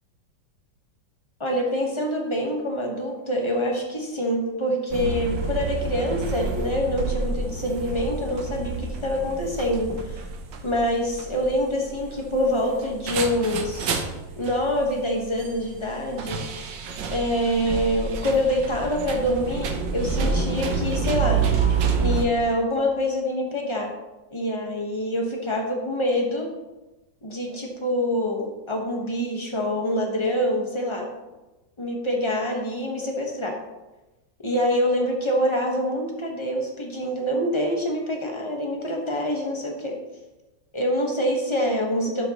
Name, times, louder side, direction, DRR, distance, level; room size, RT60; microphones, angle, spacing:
voice 1, 1.4-10.3 10.6-14.0 14.4-16.8 17.1-21.4 22.0-23.9 24.3-26.5 27.2-31.1 31.8-33.5 34.4-40.0 40.7-42.3, equal, 20° left, 1 dB, 1.1 m, -25 dB
sound 1, 4.9-22.2, right 5 dB, 75° right, 1.5 m, -29 dB
12.0 x 6.3 x 3.0 m, 1.1 s
omnidirectional pair, 2.0 m